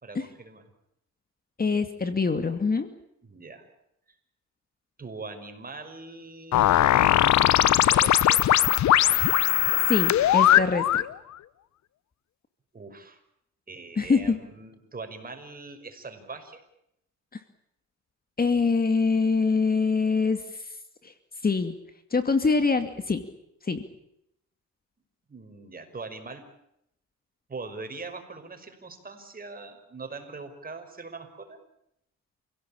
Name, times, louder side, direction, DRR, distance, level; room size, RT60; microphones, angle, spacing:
voice 1, 0.0-0.6 3.2-3.7 5.0-6.7 7.7-8.4 12.7-13.2 13.7-16.6 25.3-26.4 27.5-31.6, right 3 dB, 30° right, 7 dB, 5.8 m, -41 dB
voice 2, 1.6-2.9 9.9-11.0 14.0-14.4 18.4-20.4 21.0-21.1 21.4-21.7 22.1-23.2 23.7-23.8, left 4 dB, 30° left, 9 dB, 2.4 m, -24 dB
sound 1, 6.5-11.1, left 12 dB, 65° left, 1.0 m, -20 dB
29.0 x 17.0 x 8.9 m, 0.79 s
cardioid pair, 90°, 30 cm